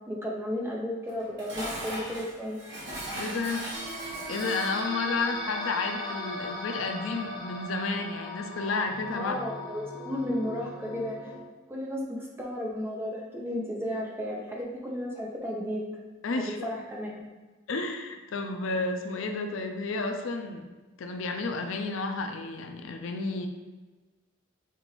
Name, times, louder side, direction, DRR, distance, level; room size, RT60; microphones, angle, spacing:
voice 1, 0.1-2.6 9.1-11.2 11.7-15.8 16.3-17.2, left 1 dB, 10° right, -2 dB, 0.6 m, -33 dB
Dishes pots and pans, 1.1-4.9, right 1 dB, 55° right, 1.2 m, -38 dB
voice 2, 3.1-3.7 4.3-9.3 16.2-16.6 17.7-20.6 21.0-23.5, left 3 dB, 70° left, 5 dB, 0.4 m, -31 dB
sound 1, 3.7-11.4, left 1 dB, 25° left, 0.8 m, -38 dB
5.5 x 2.5 x 3.1 m, 1.3 s
head